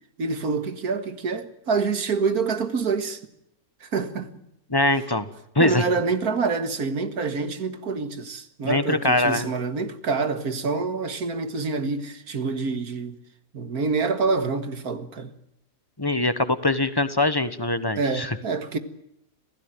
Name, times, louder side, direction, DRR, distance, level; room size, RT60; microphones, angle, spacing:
voice 1, 0.2-3.2 3.8-4.4 5.6-13.2 13.5-15.3 18.0-18.8, right 4 dB, 80° right, 2.3 m, -26 dB
voice 2, 4.7-5.3 5.5-5.8 8.6-9.5 16.0-18.4, left 2 dB, 15° left, 1.3 m, -22 dB
26.0 x 17.0 x 9.2 m
omnidirectional pair, 1.6 m